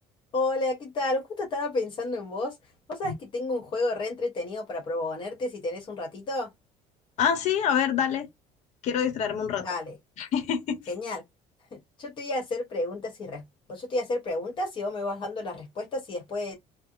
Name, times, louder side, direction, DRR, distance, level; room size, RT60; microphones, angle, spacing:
voice 1, 0.3-2.6 2.9-6.5 9.6-10.0 10.9-11.2 11.7-13.4 13.7-16.5, left 2 dB, 35° left, 1.1 m, -31 dB
voice 2, 7.2-8.3 8.8-9.7 10.2-10.8, left 8 dB, 55° left, 0.9 m, -26 dB
3.3 x 2.1 x 2.4 m
cardioid pair, 155°, 14 cm